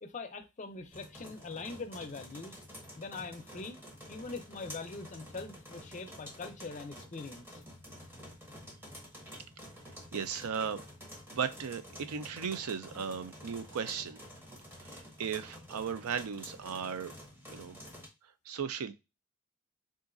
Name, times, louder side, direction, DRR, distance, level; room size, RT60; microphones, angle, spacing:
voice 1, 0.0-2.6 3.0-3.8 4.1-7.6, left 3 dB, 35° left, 0.5 m, -43 dB
sound 1, 0.9-18.1, equal, 10° right, 0.8 m, -50 dB
voice 2, 10.1-10.8 11.3-14.2 14.8-17.1 17.5-17.8 18.5-18.9, right 6 dB, 85° right, 0.4 m, -36 dB
3.8 x 2.5 x 2.4 m
head